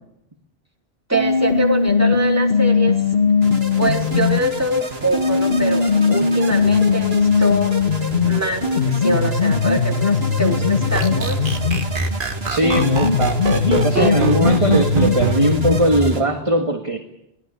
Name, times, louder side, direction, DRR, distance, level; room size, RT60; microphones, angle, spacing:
sound 1, 1.1-4.4 5.1-12.1 12.6-16.1, left 5 dB, 60° left, 2.1 m, -19 dB
voice 1, 1.1-3.0 3.8-7.8 8.2-11.6 13.9-14.1, right 1 dB, 15° right, 3 dB, 2.9 m, -24 dB
sound 2, 3.4-16.2, right 1 dB, 75° right, 2.6 m, -31 dB
sound 3, 10.9-15.3, right 4 dB, 55° right, 1.6 m, -22 dB
voice 2, 12.5-17.0, right 1 dB, 30° right, 5 dB, 1.7 m, -20 dB
22.5 x 17.0 x 9.9 m, 0.82 s
omnidirectional pair, 1.1 m